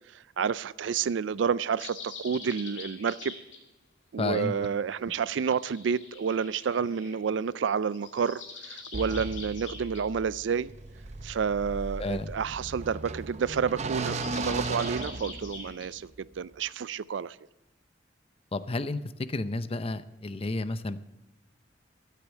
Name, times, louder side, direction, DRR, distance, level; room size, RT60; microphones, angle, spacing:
voice 1, 0.4-3.3 4.1-8.4 8.7-10.7 11.2-17.4, right 6 dB, 75° right, 19 dB, 0.4 m, -29 dB
sound 1, 1.8-3.6 5.2-7.2 7.8-10.1 13.8-15.9, left 4 dB, 75° left, 2.5 m, -45 dB
voice 2, 4.2-4.5 12.0-12.3 18.5-19.0 19.3-21.0, left 2 dB, 30° left, 13 dB, 0.6 m, -31 dB
sound 2, 8.9-15.9, right 3 dB, 40° right, 0.7 m, -36 dB
13.0 x 8.5 x 8.1 m, 0.97 s
head